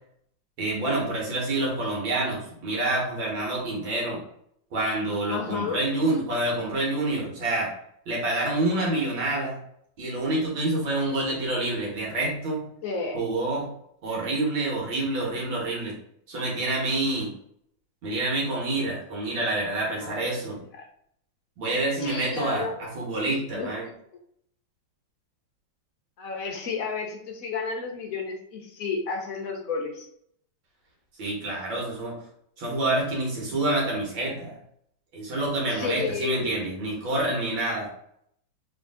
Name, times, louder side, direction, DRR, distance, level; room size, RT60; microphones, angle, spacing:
voice 1, 0.6-4.2 4.7-7.7 8.1-9.6 10.0-12.6 13.1-13.7 14.0-15.9 16.3-17.3 18.0-20.6 21.6-23.8 31.2-32.2 32.6-34.6 35.1-37.9, right 2 dB, 70° right, -3 dB, 2.1 m, -27 dB
voice 2, 5.3-5.8 12.8-13.2 20.0-20.2 20.8-20.9 22.0-23.9 26.2-30.1 35.7-36.6, left 5 dB, 65° left, 1 dB, 0.9 m, -32 dB
3.7 x 3.3 x 3.7 m, 0.69 s
omnidirectional pair, 2.2 m